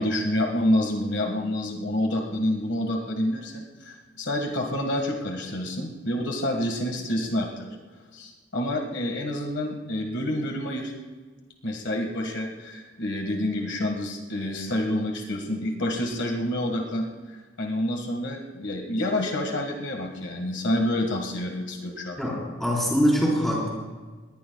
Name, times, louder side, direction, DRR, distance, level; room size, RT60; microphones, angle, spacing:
voice 1, 0.0-7.7 8.1-10.9 11.6-17.0 17.6-22.3, left 1 dB, 65° left, 2 dB, 1.7 m, -28 dB
voice 2, 22.2-23.7, equal, ahead, -5 dB, 4.4 m, -23 dB
21.0 x 19.5 x 2.3 m, 1.3 s
head